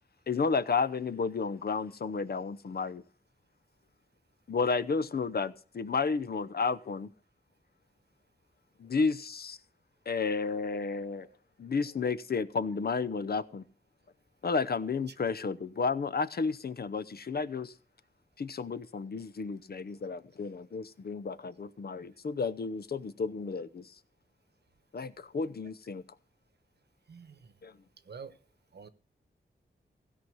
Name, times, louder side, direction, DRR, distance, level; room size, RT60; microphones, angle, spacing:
voice 1, 0.3-3.0 4.5-7.1 8.8-9.6 10.1-11.3 11.6-13.7 14.4-17.7 18.4-24.0 24.9-26.0 27.6-27.8, left 4 dB, 60° left, 0.8 m, -32 dB
voice 2, 11.0-11.3 27.1-27.5 28.0-28.4 28.7-28.9, right 5 dB, 65° right, 1.1 m, -48 dB
16.5 x 5.8 x 7.8 m
wide cardioid pair, 130°, 18 cm